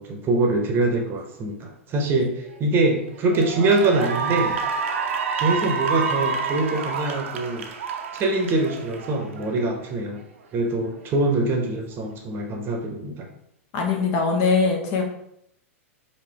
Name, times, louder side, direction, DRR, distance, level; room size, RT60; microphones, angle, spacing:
voice 1, 0.0-4.5 5.4-7.6 8.1-10.2 10.5-13.3, right 2 dB, 30° right, 2 dB, 0.9 m, -24 dB
Cheering / Applause, 2.5-2.8 3.2-9.8, right 5 dB, 65° right, 0.6 m, -28 dB
voice 2, 13.7-15.0, left 4 dB, 45° left, 2 dB, 0.9 m, -21 dB
5.0 x 2.8 x 3.4 m, 0.75 s
figure-of-eight pair, 100°, 7 cm